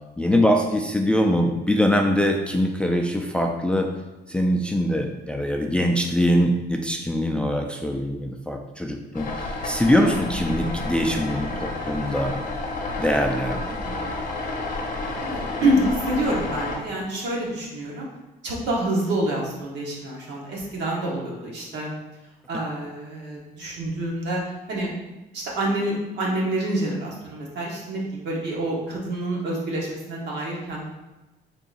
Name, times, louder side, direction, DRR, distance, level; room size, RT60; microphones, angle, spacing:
voice 1, 0.2-3.9 4.3-12.3 13.0-13.6, equal, 5° left, 2 dB, 0.3 m, -23 dB
sound 1, 9.1-16.8, left 2 dB, 50° left, 0.7 m, -30 dB
voice 2, 13.6-14.0 15.2-18.1 18.4-21.9 22.5-25.0 25.3-30.9, right 1 dB, 80° right, -3 dB, 1.2 m, -27 dB
3.8 x 2.4 x 3.9 m, 1.1 s
cardioid pair, 115°, 18 cm